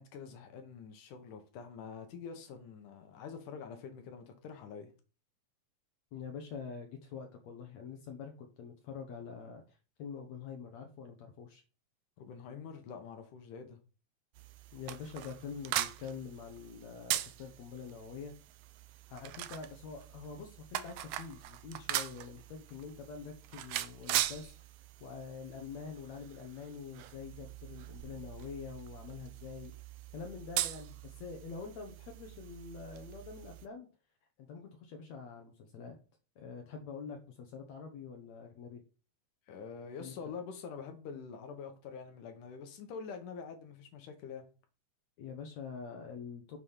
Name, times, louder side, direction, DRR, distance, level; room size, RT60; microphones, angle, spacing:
voice 1, 0.0-4.9 12.2-13.8 39.5-44.4, left 6 dB, 85° left, 2.8 m, -46 dB
voice 2, 6.1-11.6 14.7-18.3 19.1-24.5 25.0-29.7 30.1-33.9 34.5-36.0 36.4-38.8 40.0-40.1 45.2-46.6, left 6 dB, 65° left, 2.3 m, -45 dB
sound 1, 14.3-33.7, right 13 dB, 80° right, 1.5 m, -41 dB
7.5 x 5.1 x 5.6 m
omnidirectional pair, 3.5 m